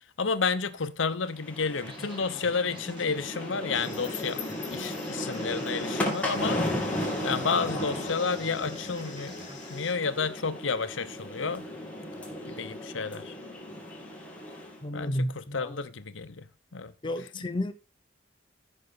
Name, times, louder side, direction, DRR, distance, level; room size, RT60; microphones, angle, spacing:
voice 1, 0.0-6.6 7.2-9.3 9.7-11.7 12.5-13.4 14.9-16.9 17.3-17.5, left 5 dB, 75° left, 0.9 m, -31 dB
sound 1, 1.3-14.8, left 1 dB, 5° left, 2.3 m, -35 dB
sound 2, 1.8-10.8, equal, 25° right, 1.3 m, -47 dB
sound 3, 3.7-9.9, left 8 dB, 40° left, 3.0 m, -47 dB
voice 2, 14.8-15.8 17.0-17.7, left 1 dB, 25° left, 0.7 m, -32 dB
15.0 x 5.6 x 3.9 m
head